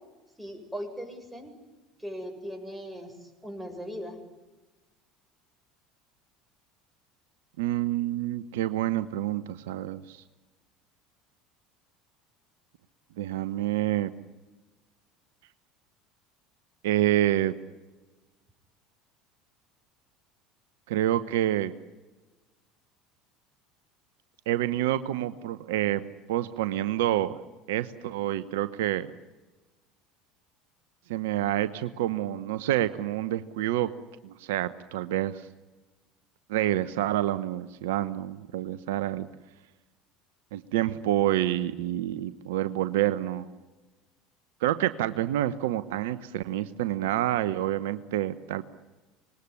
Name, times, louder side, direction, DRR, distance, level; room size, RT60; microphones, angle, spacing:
voice 1, 0.4-1.5 2.0-4.2, equal, 5° right, 3 dB, 7.5 m, -39 dB
voice 2, 7.6-10.2 13.2-14.1 16.8-17.5 20.9-21.7 24.5-26.0 26.3-27.4 27.7-29.1 31.1-33.9 34.2-35.5 36.5-39.3 40.5-43.5 44.6-48.6, right 13 dB, 75° right, 14 dB, 0.9 m, -28 dB
26.0 x 20.5 x 9.9 m, 1.2 s
hypercardioid pair, 70°, 0 cm